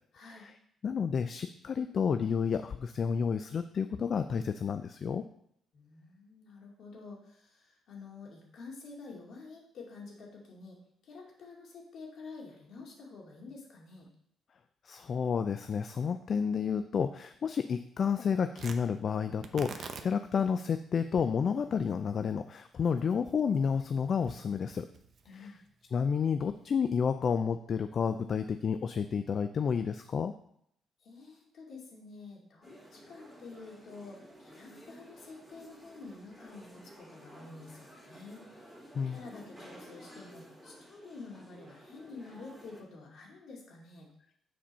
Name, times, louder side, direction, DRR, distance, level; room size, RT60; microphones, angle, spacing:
voice 1, 0.1-0.5 5.7-14.1 25.3-25.6 31.0-38.5 39.1-44.1, left 3 dB, 65° left, -2 dB, 2.4 m, -49 dB
voice 2, 0.8-5.2 14.8-24.9 25.3-25.5 25.9-30.3 38.9-39.2, left 6 dB, 50° left, 9 dB, 0.4 m, -30 dB
Tearing, 18.5-26.9, right 5 dB, 55° right, 0.7 m, -50 dB
sound 1, 32.6-42.8, equal, ahead, 3.0 m, -53 dB
7.5 x 4.4 x 5.5 m, 0.71 s
cardioid pair, 90°, 0 cm